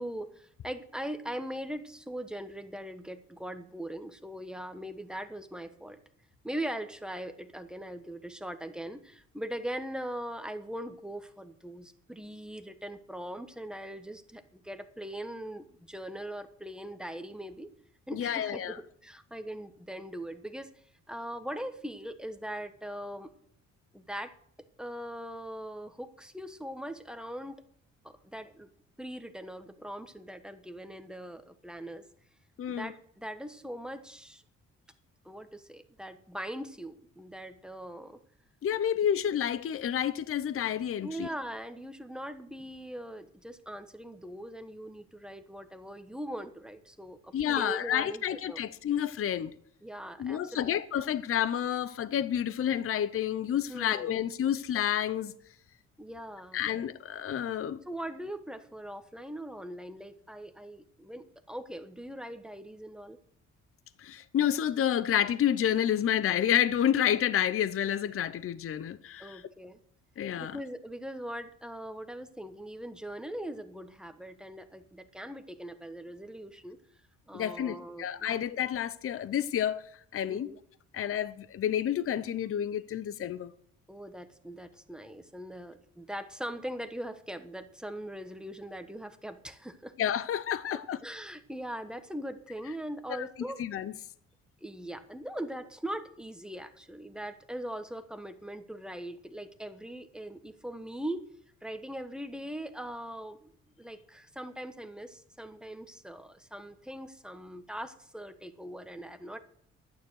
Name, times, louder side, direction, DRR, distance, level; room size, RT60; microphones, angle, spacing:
voice 1, 0.0-6.0 6.4-17.7 18.1-18.8 19.0-20.7 21.1-23.3 23.9-24.4 24.8-27.6 28.0-28.7 29.0-32.0 32.7-34.4 35.2-38.2 41.0-48.6 49.8-50.7 53.7-54.1 56.0-56.6 57.8-63.2 69.2-69.8 70.4-76.8 77.3-78.5 80.3-80.6 83.9-89.9 90.7-93.6 94.6-101.3 101.6-103.5 103.8-109.4, right 1 dB, 5° right, 1.2 m, -41 dB
voice 2, 18.1-18.8 32.6-32.9 38.6-41.3 47.3-49.5 50.2-55.3 56.5-57.8 64.0-69.4 70.2-70.6 77.3-79.8 80.1-80.5 80.9-83.5 90.0-91.0 93.1-93.3 93.6-93.9, left 10 dB, 45° left, 0.7 m, -29 dB
11.5 x 9.5 x 6.4 m
cardioid pair, 90°, 30 cm